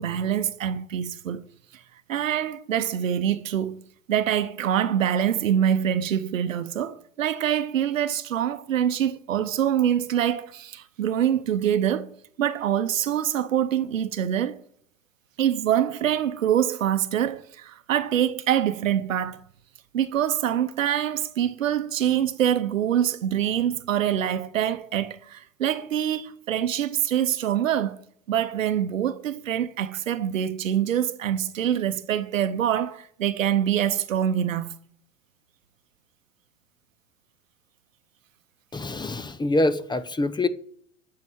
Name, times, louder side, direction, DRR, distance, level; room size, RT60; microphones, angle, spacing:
voice 1, 0.0-1.4 1.7-1.8 2.1-3.8 4.1-12.1 12.4-14.6 15.4-19.4 19.9-28.0 28.3-34.7, right 10 dB, 85° right, 0.8 m, -25 dB
voice 2, 38.7-40.5, left 2 dB, 10° left, 0.7 m, -25 dB
9.3 x 6.8 x 8.9 m
hypercardioid pair, 90°, 38 cm